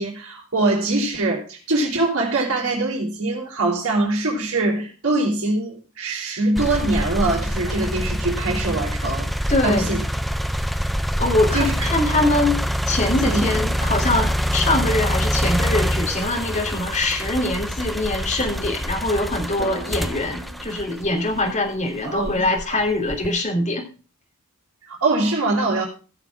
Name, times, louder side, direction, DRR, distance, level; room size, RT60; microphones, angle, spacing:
voice 1, 0.0-10.0 11.5-11.9 13.2-13.4 22.0-22.4 24.8-25.8, right 2 dB, 75° right, -6 dB, 3.7 m, -23 dB
sound 1, 4.2-4.3 7.7-9.2 13.2-16.9 19.6-22.3, equal, 50° right, 4.7 m, -42 dB
sound 2, 6.6-21.6 22.2-23.4, equal, ahead, 0.4 m, -25 dB
voice 2, 9.5-9.9 11.2-23.9, left 2 dB, 35° left, 0 dB, 3.1 m, -23 dB
17.0 x 7.2 x 3.6 m, 0.36 s
head